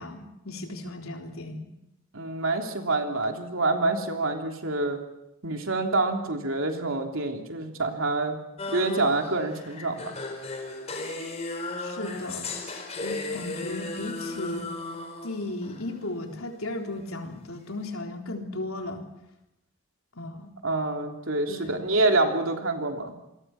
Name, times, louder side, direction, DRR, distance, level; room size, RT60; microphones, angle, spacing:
voice 1, 0.0-1.7 11.8-12.5 13.0-14.7 15.2-19.0 20.2-20.5 21.5-21.8, left 2 dB, 80° left, 3 dB, 3.7 m, -35 dB
voice 2, 2.1-5.0 5.4-8.4 8.7-10.2 20.6-23.1, right 2 dB, 70° right, 3 dB, 3.3 m, -27 dB
sound 1, 8.6-15.8, left 2 dB, 30° left, 4.4 m, -35 dB
27.5 x 22.0 x 6.0 m, 0.90 s
head